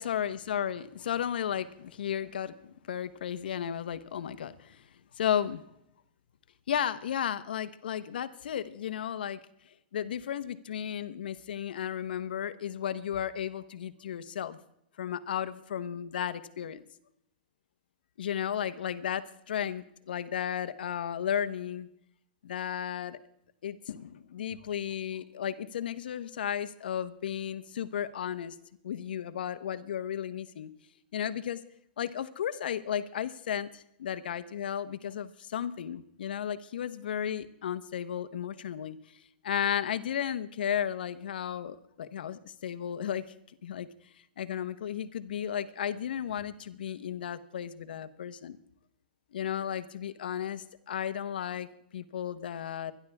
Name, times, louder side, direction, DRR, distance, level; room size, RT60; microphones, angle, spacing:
voice 1, 0.0-4.8 5.2-5.6 6.7-9.4 9.9-14.6 15.0-16.8 18.2-21.9 22.4-23.2 23.6-28.5 28.8-30.7 31.1-31.6 32.0-39.0 39.4-43.2 43.6-43.9 44.4-48.6 49.3-52.9, left 9 dB, 80° left, 12 dB, 1.2 m, -34 dB
24.0 x 11.5 x 3.6 m, 0.75 s
hypercardioid pair, 160°, 5 cm